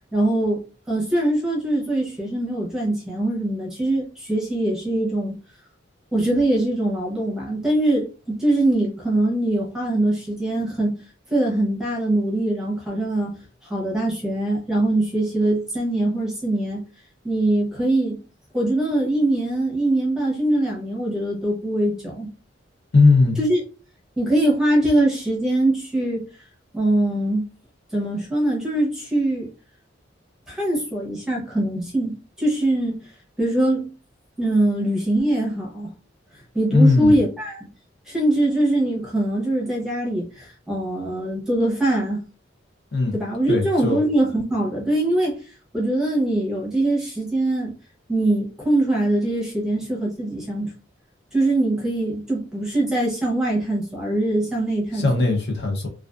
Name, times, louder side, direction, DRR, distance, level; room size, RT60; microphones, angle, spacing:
voice 1, 0.1-0.6 0.9-5.4 6.1-10.9 11.3-13.3 13.7-16.8 17.2-18.2 18.5-22.3 23.4-23.6 24.2-26.2 26.7-27.5 27.9-29.5 30.5-33.0 33.4-33.9 34.4-35.9 36.5-37.7 38.1-42.2 43.1-45.4 45.7-47.7 48.1-50.7 51.3-55.1, right 1 dB, 5° right, 0.7 m, -22 dB
voice 2, 22.9-23.4 36.7-37.2 42.9-43.1 43.5-44.0 54.9-55.9, left 3 dB, 55° left, 0.6 m, -18 dB
2.4 x 2.3 x 2.4 m
head